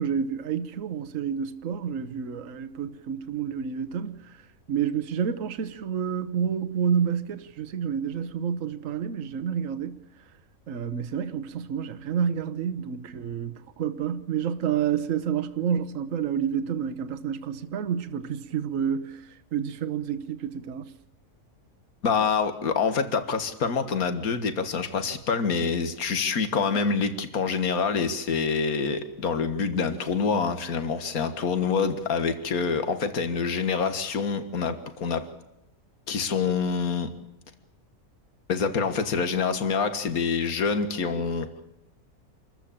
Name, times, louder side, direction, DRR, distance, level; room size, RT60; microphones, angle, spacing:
voice 1, 0.0-4.4 4.7-10.0 10.7-20.9, right 7 dB, 60° right, 1.3 m, -29 dB
voice 2, 22.0-35.2 36.1-37.1 38.5-41.5, left 5 dB, 70° left, 2.0 m, -26 dB
26.5 x 14.0 x 8.8 m
omnidirectional pair, 1.6 m